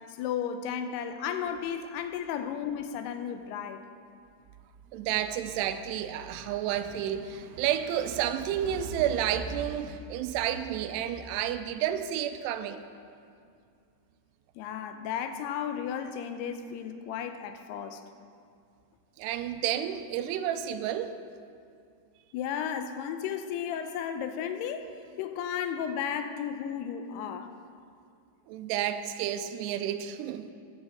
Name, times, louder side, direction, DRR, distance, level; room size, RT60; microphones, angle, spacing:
voice 1, 0.1-3.9 14.6-18.0 22.3-24.9 25.2-27.5, left 8 dB, 80° left, 8 dB, 2.5 m, -34 dB
voice 2, 4.9-12.8 19.2-21.1 28.5-30.5, right 10 dB, 85° right, 10 dB, 2.6 m, -31 dB
14.0 x 9.9 x 4.1 m, 2.3 s
omnidirectional pair, 4.8 m